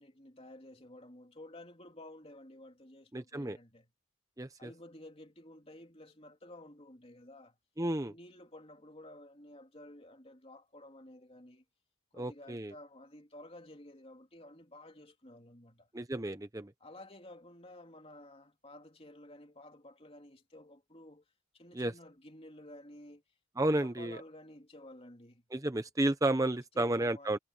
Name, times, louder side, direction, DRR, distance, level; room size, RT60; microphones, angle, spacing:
voice 1, 0.0-3.9 4.6-7.6 8.0-11.6 12.1-15.9 16.8-21.2 21.5-23.2 23.6-25.5 26.7-27.4, left 1 dB, 25° left, 3.2 m, -53 dB
voice 2, 3.1-3.6 4.4-4.7 7.8-8.1 12.2-12.7 15.9-16.7 21.7-21.9 23.6-24.2 25.5-27.4, right 1 dB, 15° right, 0.7 m, -32 dB
head